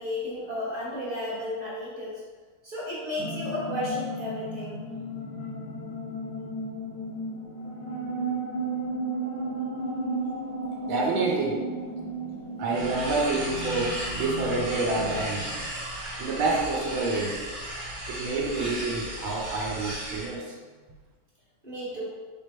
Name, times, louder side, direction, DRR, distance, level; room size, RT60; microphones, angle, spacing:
voice 1, 0.0-2.2 2.6-4.8 21.6-22.1, left 1 dB, 25° right, -8 dB, 1.3 m, -33 dB
sound 1, 3.2-15.7, right 2 dB, 65° left, 1.0 m, -34 dB
voice 2, 10.9-11.7 12.6-15.5 16.2-17.4 18.1-20.6, right 3 dB, 80° right, -2 dB, 1.6 m, -28 dB
sound 2, 12.7-20.3, right 1 dB, 60° right, 1.6 m, -35 dB
3.5 x 3.4 x 4.4 m, 1.4 s
omnidirectional pair, 2.3 m